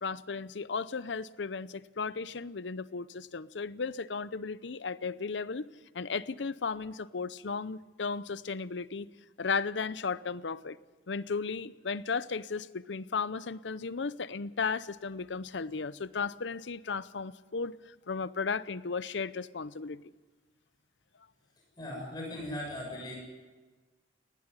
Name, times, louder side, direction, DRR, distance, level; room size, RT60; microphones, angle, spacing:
voice 1, 0.0-5.7 5.9-9.1 9.4-10.8 11.1-20.0, left 5 dB, 80° left, 0.7 m, -35 dB
voice 2, 21.8-23.2, left 1 dB, 25° left, 7.1 m, -38 dB
19.5 x 16.0 x 9.8 m
head